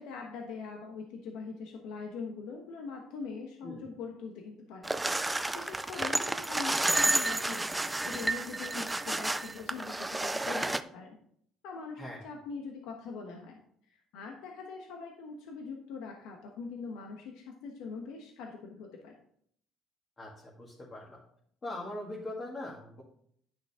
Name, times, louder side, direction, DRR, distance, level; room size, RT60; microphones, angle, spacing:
voice 1, 0.0-5.0 5.5-11.2 11.6-13.6 13.9-19.1, left 5 dB, 85° left, 1 dB, 1.2 m, -42 dB
sound 1, 4.8-10.8, right 2 dB, 10° right, 0.4 m, -31 dB
voice 2, 20.2-21.2 21.6-23.0, left 1 dB, 30° left, -6 dB, 2.2 m, -41 dB
10.5 x 6.0 x 3.7 m, 0.66 s
cardioid pair, 120°, 0 cm